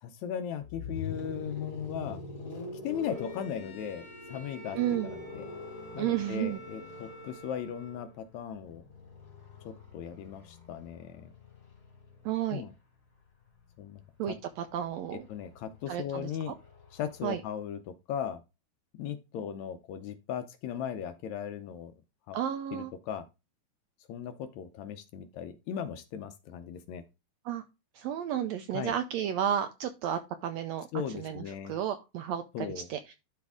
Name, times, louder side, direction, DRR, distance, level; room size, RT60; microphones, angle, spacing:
voice 1, 0.0-2.2 2.8-4.8 5.0-5.5 5.9-8.8 9.6-11.3 12.5-12.7 13.8-14.0 14.3-14.4 15.3-16.5 16.9-18.4 19.0-21.9 22.3-22.4 22.7-23.3 24.1-27.0 28.7-29.0 30.9-31.8 32.5-32.9, left 8 dB, 75° left, 1.8 m, -37 dB
sound 1, 0.6-12.6 13.8-17.4, left 4 dB, 45° left, 3.3 m, -44 dB
Bowed string instrument, 3.0-8.3, right 2 dB, 5° right, 1.6 m, -50 dB
voice 2, 4.8-5.1 6.0-6.6 12.2-12.6 14.2-15.2 15.9-16.5 17.2-17.4 22.3-22.9 27.4-27.6 27.9-30.9 31.1-31.4 31.7-33.1, right 10 dB, 85° right, 1.5 m, -32 dB
11.5 x 4.2 x 3.5 m
omnidirectional pair, 3.6 m